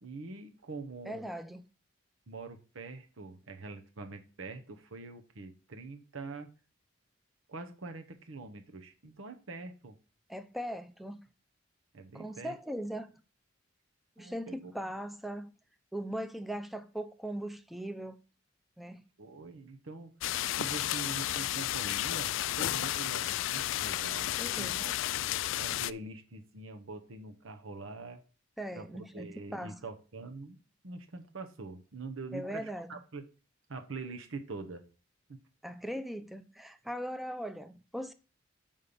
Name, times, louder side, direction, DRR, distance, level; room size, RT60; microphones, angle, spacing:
voice 1, 0.0-1.3 2.3-6.5 7.5-10.0 11.9-12.5 14.2-14.9 19.2-20.2 20.6-24.9 25.6-28.2 28.7-30.6 30.8-33.2 33.7-34.8 35.3-35.4, right 3 dB, 90° right, 1.0 m, -44 dB
voice 2, 1.1-1.6 10.3-11.2 12.1-13.1 14.2-15.5 15.9-18.2 18.8-19.0 24.4-24.9 28.6-29.8 32.3-32.9 35.6-38.1, equal, ahead, 0.5 m, -39 dB
sound 1, 20.2-25.9, left 13 dB, 70° left, 0.3 m, -32 dB
5.6 x 5.3 x 6.8 m
head